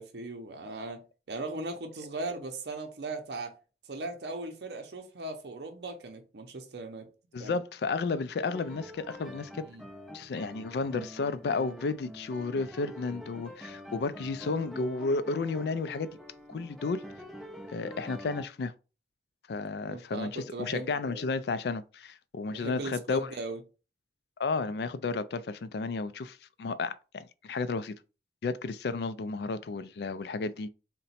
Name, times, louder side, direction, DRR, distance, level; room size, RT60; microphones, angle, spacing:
voice 1, 0.0-3.6 3.9-7.1 7.4-7.6 9.6-9.8 19.8-21.3 22.5-23.6, right 2 dB, 70° right, 0.6 m, -38 dB
voice 2, 7.3-9.7 10.1-16.1 16.5-17.0 17.7-18.7 19.5-23.3 24.4-28.0 28.4-30.7, left 4 dB, 70° left, 0.4 m, -32 dB
sound 1, 8.5-18.4, equal, ahead, 0.6 m, -46 dB
3.9 x 2.2 x 4.2 m
head